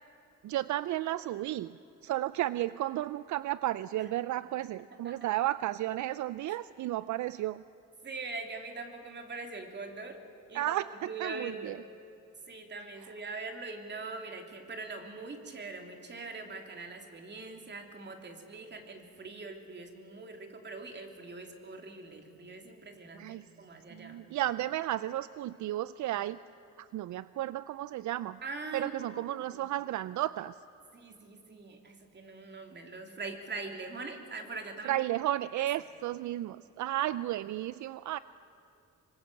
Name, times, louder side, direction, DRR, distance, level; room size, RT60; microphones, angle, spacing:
voice 1, 0.4-7.6 10.5-11.8 13.0-13.1 23.1-23.5 23.9-26.4 26.8-28.4 28.7-30.6 34.8-38.2, right 14 dB, 70° right, 16 dB, 0.5 m, -33 dB
voice 2, 8.0-10.2 10.5-11.8 12.5-24.2 28.4-29.7 30.9-35.0 35.6-35.7, right 3 dB, 35° right, 4 dB, 3.1 m, -43 dB
26.0 x 24.5 x 7.8 m, 2.8 s
cardioid pair, 125°, 30 cm